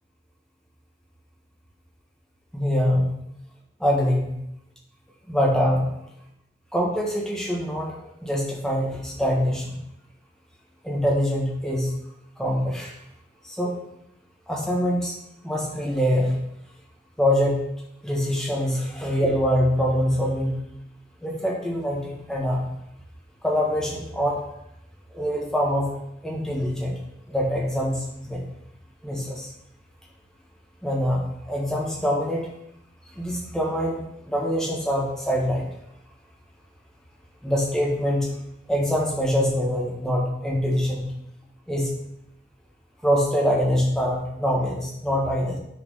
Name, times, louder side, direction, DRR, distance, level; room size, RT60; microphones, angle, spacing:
voice 1, 2.5-3.1 3.8-4.4 5.3-5.9 6.7-9.7 10.8-11.9 12.4-13.0 13.4-13.7 14.5-15.2 15.4-16.4 17.2-17.6 18.0-20.5 21.2-22.7 23.4-24.4 25.1-25.9 26.2-26.9 27.3-28.4 29.0-29.5 30.8-32.5 33.1-34.0 34.3-35.7 37.4-38.3 38.7-41.1 41.7-41.9 43.0-45.6, equal, 5° left, -2 dB, 1.6 m, -24 dB
9.6 x 4.4 x 5.5 m, 0.80 s
head